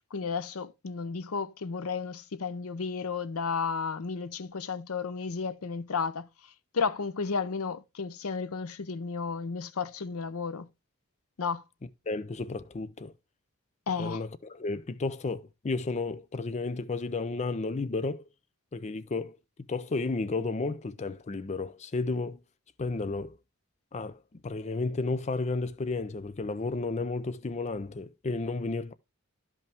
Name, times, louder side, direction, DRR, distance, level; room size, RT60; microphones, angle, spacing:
voice 1, 0.1-6.3 6.7-10.7 11.4-11.6 13.9-14.2, left 5 dB, 85° left, 0.7 m, -33 dB
voice 2, 12.1-13.1 14.0-18.2 18.7-19.4 19.7-22.4 22.8-23.4 23.9-28.9, left 3 dB, 30° left, 0.5 m, -32 dB
12.0 x 5.4 x 3.4 m
head